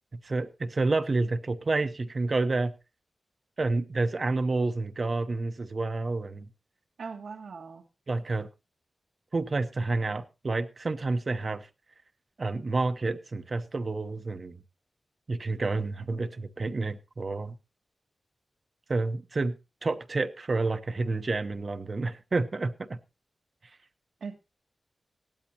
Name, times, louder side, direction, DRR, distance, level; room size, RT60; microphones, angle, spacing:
voice 1, 0.2-2.7 3.6-6.5 8.1-8.5 9.3-11.7 12.4-14.6 15.3-17.6 18.9-19.5 19.8-23.0, right 3 dB, 40° right, 10 dB, 0.8 m, -29 dB
voice 2, 7.0-7.8 24.2-24.4, right 5 dB, 90° right, 3 dB, 1.8 m, -39 dB
17.5 x 12.5 x 2.8 m, 0.27 s
wide cardioid pair, 150°, 0 cm